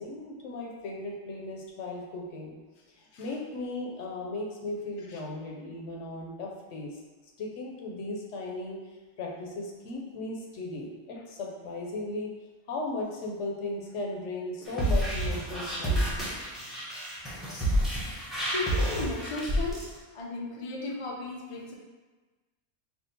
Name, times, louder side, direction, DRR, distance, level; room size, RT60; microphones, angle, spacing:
voice 1, 0.0-2.5 2.9-7.0 7.4-8.8 9.2-12.3 12.7-16.3, left 2 dB, 70° left, -1 dB, 1.0 m, -36 dB
sound 1, 14.7-19.9, equal, ahead, 0.7 m, -29 dB
voice 2, 18.5-19.8 20.1-21.7, left 3 dB, 55° left, -1 dB, 0.3 m, -35 dB
3.5 x 2.4 x 4.0 m, 1.3 s
omnidirectional pair, 1.3 m